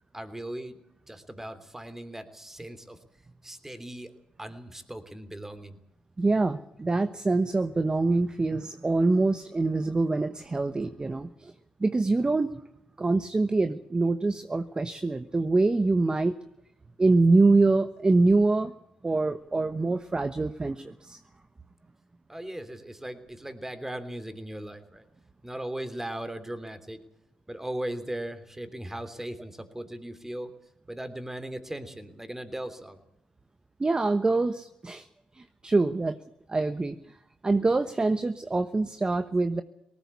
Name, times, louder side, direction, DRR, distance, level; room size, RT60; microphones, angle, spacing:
voice 1, 0.1-0.8 1.1-3.0 3.4-4.1 4.4-5.8 22.3-25.1 25.4-27.0 27.5-30.5 30.9-33.0, right 1 dB, 10° right, 9 dB, 3.1 m, -38 dB
voice 2, 6.2-11.5 11.8-12.5 13.0-16.4 17.0-18.7 19.0-21.2 33.8-35.1 35.3-36.2 36.5-37.2 37.4-39.6, right 3 dB, 25° right, 10 dB, 1.1 m, -25 dB
19.0 x 18.0 x 8.4 m, 0.80 s
supercardioid pair, 60°, 3 cm